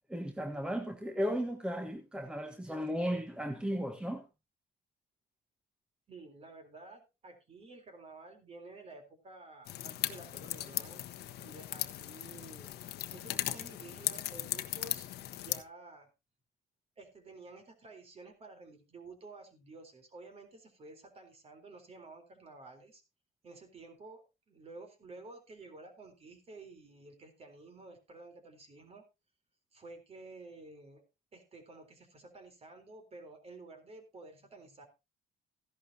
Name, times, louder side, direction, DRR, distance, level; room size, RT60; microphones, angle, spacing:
voice 1, 0.1-4.2, equal, 5° right, 1.4 m, -35 dB
voice 2, 6.1-11.0 11.4-12.7 13.1-16.1 17.0-23.0 23.4-29.0 29.7-31.0 31.3-34.9, right 3 dB, 35° right, 3.9 m, -52 dB
sound 1, 9.7-15.6, left 13 dB, 70° left, 1.1 m, -38 dB
15.0 x 11.5 x 2.8 m
cardioid pair, 110°, 17 cm